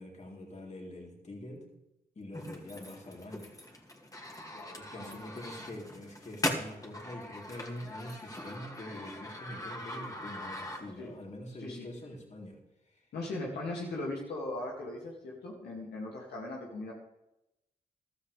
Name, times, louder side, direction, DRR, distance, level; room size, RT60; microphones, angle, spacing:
voice 1, 0.0-1.7 2.2-3.5 4.8-12.6 12.8-13.1, left 1 dB, 45° left, -1 dB, 3.9 m, -45 dB
sound 1, 2.3-11.2, left 1 dB, 20° left, 2.6 m, -41 dB
voice 2, 4.5-5.2 11.0-11.1 11.6-11.9 13.1-16.9, left 2 dB, 85° left, -3 dB, 2.6 m, -39 dB
14.5 x 12.5 x 3.5 m, 0.88 s
supercardioid pair, 50°, 17 cm